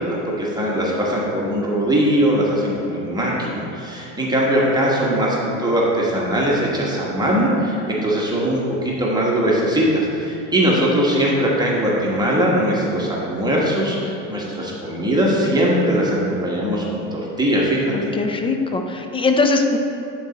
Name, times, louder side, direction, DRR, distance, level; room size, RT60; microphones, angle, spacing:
voice 1, 0.0-18.1, equal, 10° right, -5 dB, 1.2 m, -20 dB
voice 2, 17.9-19.8, left 3 dB, 15° left, 4 dB, 0.4 m, -20 dB
9.0 x 4.1 x 4.0 m, 2.7 s
supercardioid pair, 110°, 39 cm